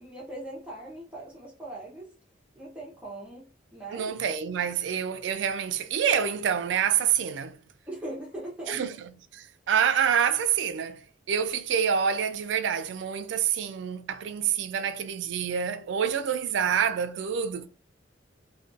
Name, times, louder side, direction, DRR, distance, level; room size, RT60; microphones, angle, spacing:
voice 1, 0.0-2.1 2.6-3.4 3.7-4.1 7.9-8.8, right 1 dB, 5° right, 0.5 m, -40 dB
voice 2, 3.9-7.6 8.7-8.9 9.4-11.0 11.3-17.7, right 8 dB, 70° right, 0.3 m, -27 dB
2.4 x 2.2 x 2.4 m
head